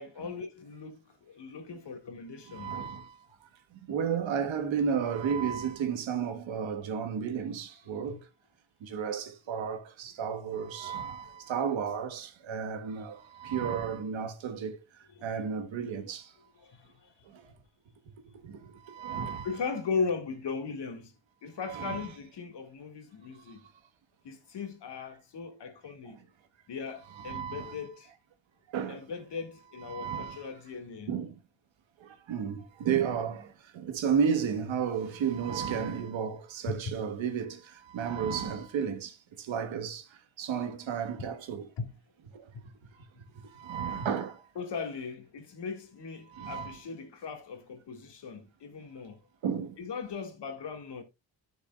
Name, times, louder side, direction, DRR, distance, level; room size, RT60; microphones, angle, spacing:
voice 1, 0.0-2.7 8.1-8.2 11.3-11.4 15.2-15.3 16.6-17.1 19.0-19.1 19.4-21.1 21.4-23.7 24.2-26.2 26.7-28.1 28.9-31.1 36.7-36.8 41.8-41.9 42.5-42.6 44.6-49.2 49.8-51.0, left 5 dB, 65° left, 2.1 m, -38 dB
voice 2, 2.5-3.2 3.9-8.2 8.8-14.8 15.2-16.3 18.4-18.6 18.8-19.5 21.7-22.1 27.2-27.8 28.7-29.0 29.9-30.4 31.1-31.3 32.0-40.1 40.4-41.7 42.3-42.4 43.5-44.4 46.3-46.8 49.4-49.8, right 7 dB, 80° right, 1.6 m, -32 dB
12.0 x 6.6 x 2.4 m
cardioid pair, 125°, 45 cm